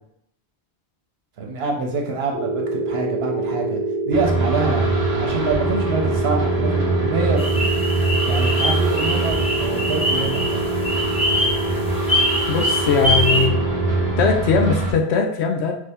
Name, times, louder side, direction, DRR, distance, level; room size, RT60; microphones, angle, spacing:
voice 1, 1.4-7.6 8.2-10.6, right 3 dB, 75° right, 1 dB, 1.0 m, -26 dB
sound 1, 2.3-14.1, right 2 dB, 50° left, 1.0 m, -26 dB
sound 2, 4.1-14.9, right 2 dB, 40° right, 0.8 m, -24 dB
sound 3, 7.4-13.5, equal, 10° left, 0.3 m, -24 dB
voice 2, 12.5-13.6 14.2-15.7, left 5 dB, 85° left, 2 dB, 0.9 m, -20 dB
3.4 x 2.7 x 3.4 m, 0.73 s
omnidirectional pair, 1.1 m